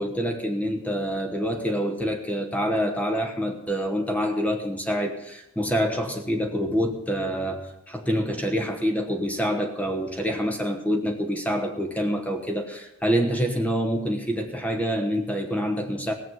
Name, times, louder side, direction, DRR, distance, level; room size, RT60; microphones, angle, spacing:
voice 1, 0.0-16.1, equal, 5° left, 3 dB, 1.2 m, -26 dB
17.0 x 7.6 x 7.9 m, 0.87 s
head